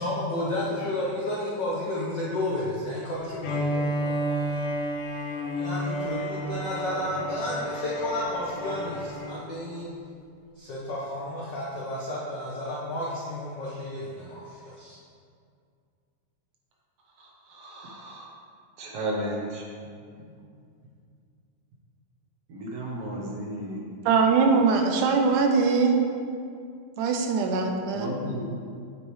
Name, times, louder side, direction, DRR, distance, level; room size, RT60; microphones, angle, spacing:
voice 1, 0.0-4.6 5.5-9.9 10.5-15.0, left 1 dB, 75° left, -6 dB, 1.0 m, -32 dB
Bowed string instrument, 3.4-9.5, equal, 90° left, 2.6 m, -31 dB
voice 2, 17.5-18.3 18.8-19.6 22.5-23.8 27.9-28.6, right 1 dB, 60° right, -2 dB, 1.8 m, -33 dB
voice 3, 24.1-25.9 27.0-28.1, right 4 dB, 85° right, 3 dB, 2.2 m, -22 dB
8.5 x 8.0 x 3.2 m, 2.2 s
omnidirectional pair, 3.6 m